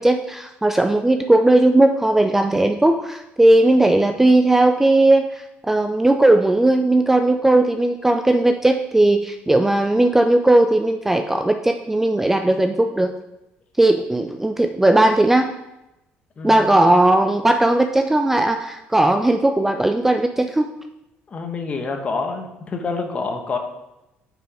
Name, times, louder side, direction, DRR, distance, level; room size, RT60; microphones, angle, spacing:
voice 1, 0.0-13.1 13.8-15.5 16.4-20.7, right 1 dB, 10° right, 6 dB, 0.3 m, -17 dB
voice 2, 16.4-17.0 21.3-23.6, left 4 dB, 30° left, 4 dB, 1.0 m, -27 dB
6.1 x 5.0 x 4.9 m, 0.93 s
cardioid pair, 115°, 4 cm